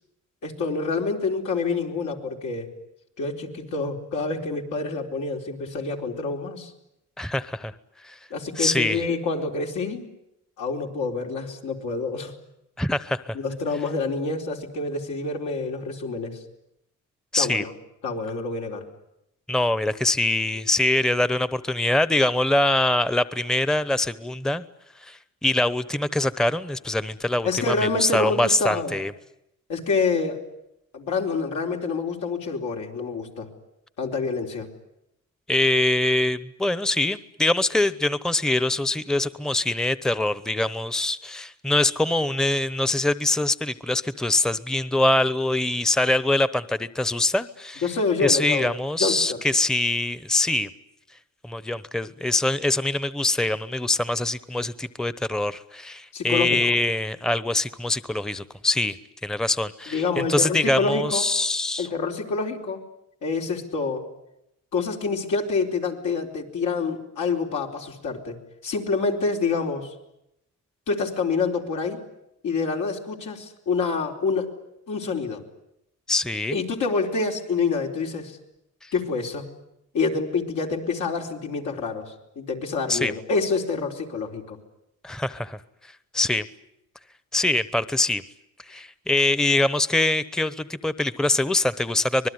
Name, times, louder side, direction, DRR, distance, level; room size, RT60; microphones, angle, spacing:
voice 1, 0.4-2.7 3.2-6.7 8.3-10.1 10.6-12.3 13.3-16.4 17.4-17.7 18.0-18.9 27.4-29.0 29.7-30.4 30.9-33.5 34.0-34.7 47.8-48.7 49.0-49.4 56.1-56.7 59.9-61.2 61.8-62.8 63.2-64.0 64.7-68.4 68.6-69.9 70.9-72.0 72.4-74.5 74.9-75.4 76.5-78.4 78.9-79.5 79.9-84.6, left 4 dB, 80° left, 1 dB, 4.3 m, -27 dB
voice 2, 7.2-7.7 8.0-8.2 8.6-9.0 12.8-13.4 17.3-17.6 19.5-24.6 25.0-29.1 35.5-47.8 48.2-50.7 51.4-59.0 59.2-61.9 76.1-76.6 78.8-78.9 82.9-83.1 85.0-85.6 86.1-86.4 87.3-88.2 88.7-92.3, left 2 dB, ahead, 15 dB, 0.9 m, -23 dB
25.5 x 20.5 x 9.6 m, 0.82 s
cardioid pair, 90°, 30 cm